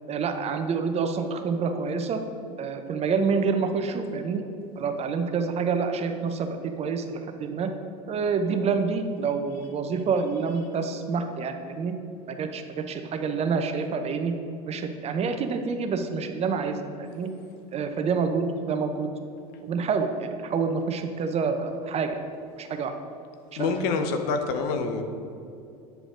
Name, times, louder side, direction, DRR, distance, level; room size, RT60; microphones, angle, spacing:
voice 1, 0.1-2.2 2.6-4.4 4.8-7.7 8.1-11.9 12.3-14.3 14.7-17.3 17.7-19.1 19.6-22.2 22.6-22.9 23.5-23.7, right 5 dB, 35° right, 7 dB, 0.7 m, -27 dB
voice 2, 23.6-25.0, left 4 dB, 60° left, 6 dB, 0.8 m, -26 dB
9.0 x 5.0 x 3.7 m, 2.6 s
hypercardioid pair, 85°, 19 cm